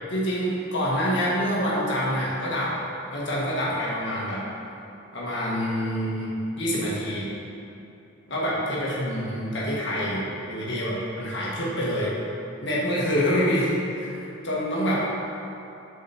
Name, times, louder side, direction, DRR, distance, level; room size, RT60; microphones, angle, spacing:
voice 1, 0.1-2.8 3.1-4.5 5.1-7.2 8.3-12.1 12.6-15.1, equal, 65° left, -6 dB, 1.7 m, -26 dB
7.5 x 5.2 x 4.3 m, 2.8 s
head